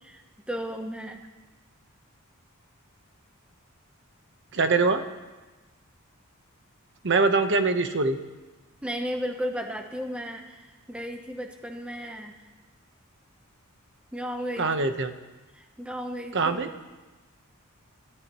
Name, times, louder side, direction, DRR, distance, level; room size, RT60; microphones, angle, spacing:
voice 1, 0.0-1.2 8.8-12.5 14.1-14.9 15.5-16.7, equal, 5° right, 3 dB, 0.9 m, -35 dB
voice 2, 4.5-5.0 7.0-8.2 14.6-15.1 16.3-16.7, right 3 dB, 60° right, 8 dB, 1.1 m, -23 dB
25.5 x 13.0 x 3.1 m, 1.2 s
head